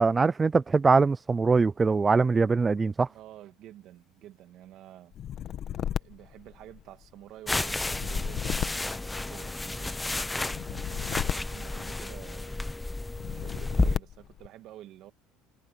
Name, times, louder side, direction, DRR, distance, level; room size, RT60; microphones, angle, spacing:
voice 1, 0.0-3.1, right 4 dB, 15° right, 0.3 m, -22 dB
voice 2, 3.1-5.1 5.8-10.0 10.4-12.7 13.3-15.1, right 13 dB, 45° right, 2.4 m, -49 dB
sound 1, 5.1-7.1 7.8-9.7 10.4-12.4 13.1-14.5, left 10 dB, 35° left, 1.1 m, -34 dB
sound 2, 7.5-14.0, left 2 dB, 5° left, 0.8 m, -32 dB
cardioid pair, 170°, 0 cm